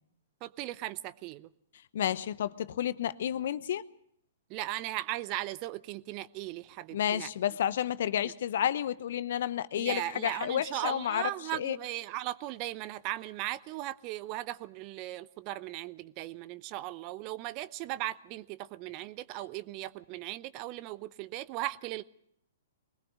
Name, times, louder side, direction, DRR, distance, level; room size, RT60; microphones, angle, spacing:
voice 1, 0.4-1.5 4.5-7.3 9.8-22.0, right 16 dB, 35° right, 0.7 m, -37 dB
voice 2, 1.9-3.8 6.9-11.8, left 10 dB, 60° left, 0.8 m, -31 dB
21.5 x 19.5 x 6.3 m
figure-of-eight pair, 115°, 0 cm